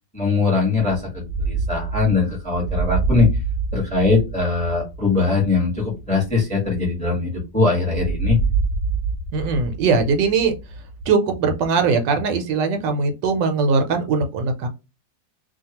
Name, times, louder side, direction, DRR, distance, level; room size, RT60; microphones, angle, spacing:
voice 1, 0.1-3.3 3.7-8.4, left 4 dB, 5° left, -1 dB, 0.7 m, -21 dB
sound 1, 0.9-7.4 7.9-11.1, right 4 dB, 45° left, 0.7 m, -27 dB
voice 2, 9.3-10.5 11.1-14.7, right 4 dB, 75° right, 6 dB, 1.2 m, -20 dB
2.8 x 2.3 x 2.7 m, 0.27 s
omnidirectional pair, 2.0 m